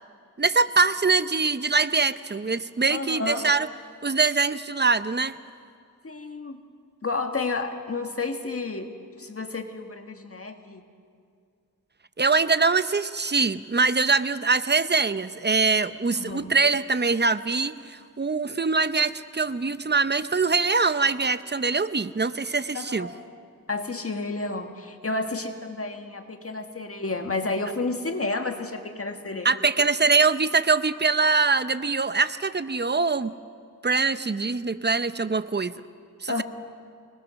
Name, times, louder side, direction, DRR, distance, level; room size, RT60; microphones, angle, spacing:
voice 1, 0.4-3.7 4.0-5.3 12.2-23.1 29.4-33.3 33.8-35.7 36.2-36.4, right 4 dB, 30° right, 13 dB, 0.7 m, -23 dB
voice 2, 2.9-3.5 6.0-6.6 7.0-8.9 9.2-10.8 16.1-16.5 22.7-23.2 23.7-29.6 36.3-36.4, left 3 dB, 45° left, 5 dB, 1.7 m, -31 dB
25.5 x 20.5 x 6.4 m, 2.3 s
wide cardioid pair, 70°, 33 cm